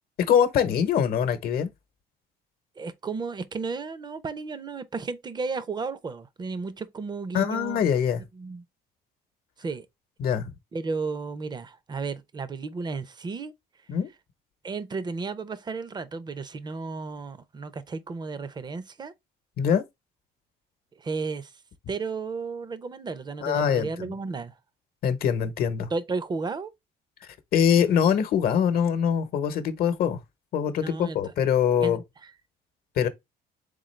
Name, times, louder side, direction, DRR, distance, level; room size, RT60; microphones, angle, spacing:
voice 1, 0.3-1.7 7.3-8.2 10.2-10.5 13.9-14.1 19.6-19.8 23.4-24.1 25.0-25.9 27.5-30.2 30.5-32.0 33.0-33.1, left 8 dB, 60° left, 0.9 m, -23 dB
voice 2, 2.8-7.8 8.3-8.6 9.6-9.9 10.7-13.5 14.6-19.1 21.0-21.5 21.9-24.5 25.9-26.7 30.8-31.3 31.8-32.0 32.2-32.3, right 4 dB, 25° right, 0.6 m, -33 dB
3.8 x 3.7 x 3.1 m
cardioid pair, 110°, 17 cm